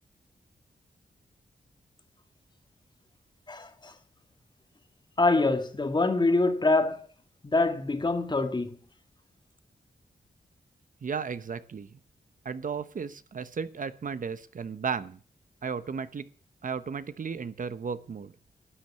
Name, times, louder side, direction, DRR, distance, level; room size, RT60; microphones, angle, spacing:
voice 1, 3.5-3.9 5.2-7.1 7.4-8.8, left 3 dB, 30° left, 1.9 m, -25 dB
voice 2, 11.0-12.0 12.4-15.2 15.6-16.3 16.6-18.3, right 6 dB, 55° right, 0.9 m, -34 dB
12.5 x 9.4 x 8.3 m
wide cardioid pair, 100°, 16 cm